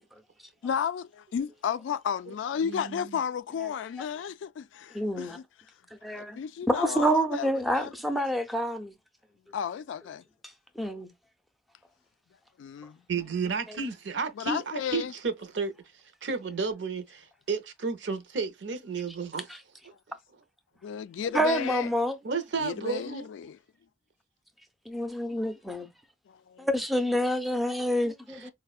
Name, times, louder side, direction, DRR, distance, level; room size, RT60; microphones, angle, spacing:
voice 1, 0.6-5.4 6.1-7.9 9.5-10.2 12.6-13.0 14.4-15.1 20.8-21.9 22.6-23.6 26.3-26.7, left 7 dB, 80° left, 0.3 m, -33 dB
voice 2, 2.6-3.2 13.1-15.7 16.2-19.5 22.2-23.3 28.3-28.5, right 5 dB, 70° right, 0.6 m, -32 dB
voice 3, 4.9-5.4 6.0-6.4 6.7-8.9 10.8-11.1 13.7-13.8 21.3-22.2 24.9-25.9 26.6-28.5, equal, ahead, 0.5 m, -27 dB
4.3 x 2.1 x 2.3 m
head